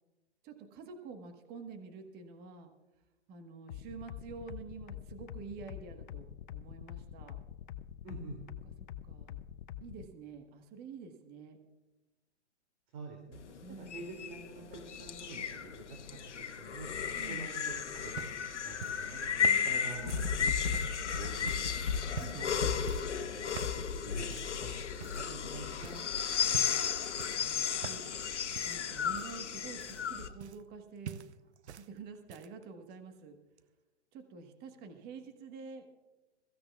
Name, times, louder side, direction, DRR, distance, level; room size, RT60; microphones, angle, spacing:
voice 1, 0.4-2.7 3.3-7.4 8.6-8.7 9.0-9.4 9.8-11.6 13.6-14.0 17.1-17.4 20.0-20.4 27.3-28.2 28.6-31.2 31.7-33.4 34.1-35.9, right 5 dB, 25° right, 6 dB, 1.4 m, -48 dB
sound 1, 3.7-10.0, left 11 dB, 45° left, 0.7 m, -45 dB
voice 2, 8.0-8.4 12.9-16.0 16.4-16.9 17.3-26.6, right 3 dB, 45° right, 1 dB, 2.6 m, -47 dB
sound 2, 13.3-30.3, left 7 dB, 80° left, 1.1 m, -34 dB
sound 3, 17.6-21.0 21.5-21.7 22.1-22.5 22.9-23.2 23.5-23.8 24.3-24.6 25.0-25.5 25.8-26.1 26.5-26.9 27.2-28.2 28.5-30.8 31.0-31.9 32.1-32.6 33.6-33.7, right 8 dB, 70° right, 0.8 m, -45 dB
22.0 x 15.5 x 2.4 m, 1.1 s
hypercardioid pair, 130°, 35 cm